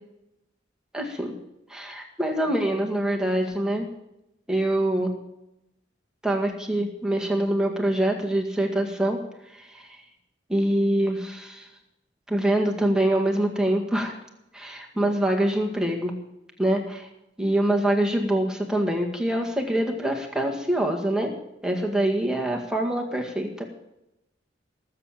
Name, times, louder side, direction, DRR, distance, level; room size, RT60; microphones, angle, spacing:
voice 1, 0.9-1.4 1.7-3.9 4.5-5.1 6.2-9.2 9.6-9.9 10.5-11.7 12.3-14.1 14.5-16.2 16.6-17.1 17.4-21.3 21.6-23.6, right 1 dB, 5° right, 1 dB, 1.8 m, -25 dB
18.5 x 7.7 x 7.4 m, 0.86 s
head